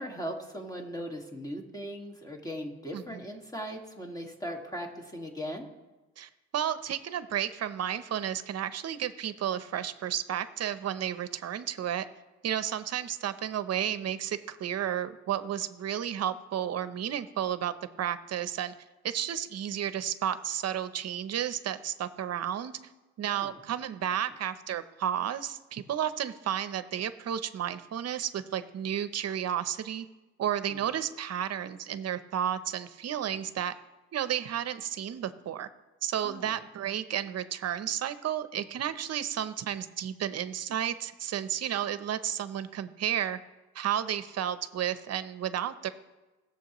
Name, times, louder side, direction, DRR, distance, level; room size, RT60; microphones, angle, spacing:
voice 1, 0.0-5.7 23.3-23.5 30.7-30.8 36.2-36.6, equal, 10° left, 2 dB, 2.0 m, -39 dB
voice 2, 6.2-12.1 12.4-18.7 19.0-22.7 23.2-30.1 30.4-33.7 34.1-35.7 36.0-43.4 43.7-45.9, right 10 dB, 55° right, 12 dB, 0.8 m, -32 dB
19.0 x 7.2 x 3.1 m, 1.1 s
cardioid pair, 90°, 30 cm